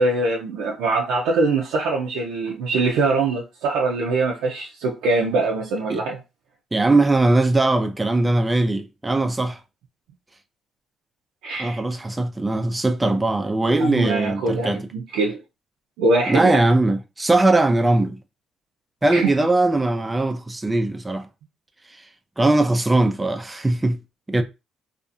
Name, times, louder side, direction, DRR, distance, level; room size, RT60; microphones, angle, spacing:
voice 1, 0.0-6.2 11.4-11.8 13.8-15.4 16.0-16.6 19.1-19.3, right 3 dB, 85° right, 0.5 m, -23 dB
voice 2, 6.7-9.6 11.6-14.8 16.3-18.2 19.0-21.3 21.9-22.1 22.4-24.0 24.3-24.4, right 2 dB, 20° right, 0.4 m, -20 dB
2.6 x 2.4 x 2.4 m
supercardioid pair, 70°, 0 cm